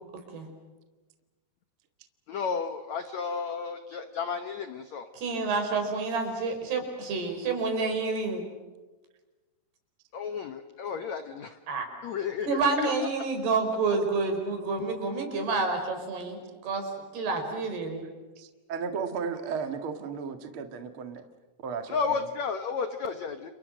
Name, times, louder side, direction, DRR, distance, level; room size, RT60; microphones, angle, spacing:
voice 1, 2.3-5.1 10.1-11.6 12.0-12.6 21.9-23.5, left 5 dB, 85° left, 8 dB, 1.5 m, -32 dB
voice 2, 5.1-8.4 11.7-11.9 12.5-18.0, right 3 dB, 65° right, 5 dB, 6.8 m, -29 dB
voice 3, 18.0-21.2 21.6-22.3, right 6 dB, 45° right, 7 dB, 1.8 m, -35 dB
30.0 x 30.0 x 6.4 m, 1.2 s
omnidirectional pair, 5.0 m